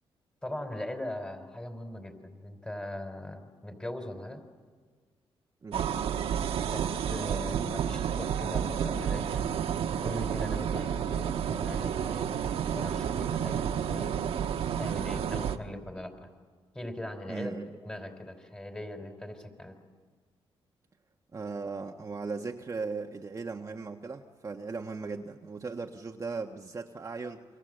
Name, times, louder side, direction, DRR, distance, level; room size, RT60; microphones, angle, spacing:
voice 1, 0.4-4.4 6.7-9.5 10.0-14.2 14.7-16.3 16.7-17.5 17.8-19.7, left 1 dB, 10° left, 6 dB, 4.5 m, -40 dB
sound 1, 5.7-15.6, right 8 dB, 80° right, 1.3 m, -30 dB
voice 2, 17.3-17.7 21.3-27.4, right 4 dB, 30° right, 2 dB, 1.3 m, -37 dB
29.0 x 25.0 x 7.9 m, 1.5 s
cardioid pair, 95°, 10 cm